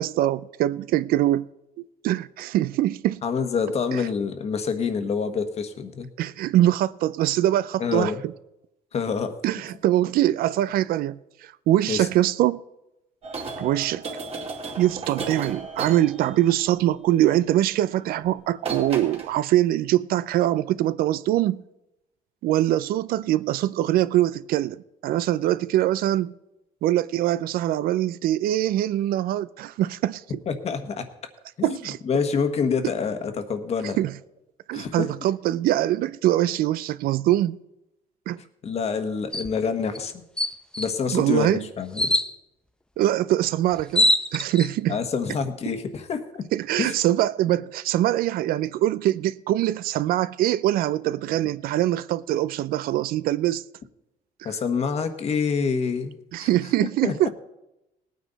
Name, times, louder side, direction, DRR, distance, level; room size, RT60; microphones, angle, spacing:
voice 1, 0.0-1.5 2.0-3.2 3.9-4.0 6.2-8.1 9.4-12.6 13.6-14.0 14.8-21.6 22.4-24.8 25.0-26.3 26.8-30.2 31.6-32.0 34.0-34.1 34.7-37.6 38.3-38.4 41.1-41.7 43.0-45.0 46.5-53.6 54.4-54.5 56.3-57.3, right 13 dB, 75° right, 0.4 m, -23 dB
voice 2, 3.2-6.1 7.8-8.2 8.9-9.3 11.9-12.1 30.5-31.0 31.6-31.8 32.1-34.0 34.7-35.1 38.6-40.2 40.8-42.1 44.9-46.4 46.8-46.9 54.4-56.5 57.0-57.3, left 5 dB, 45° left, 1.3 m, -27 dB
sound 1, 13.2-16.6 18.2-18.3 18.6-19.3, right 4 dB, 40° right, 2.2 m, -34 dB
sound 2, 39.3-39.5 39.9-40.0 40.4-40.9 42.0-42.3 43.4-43.5 43.7-44.7, left 1 dB, 5° left, 0.5 m, -22 dB
18.5 x 9.4 x 4.0 m
cardioid pair, 125°, 15 cm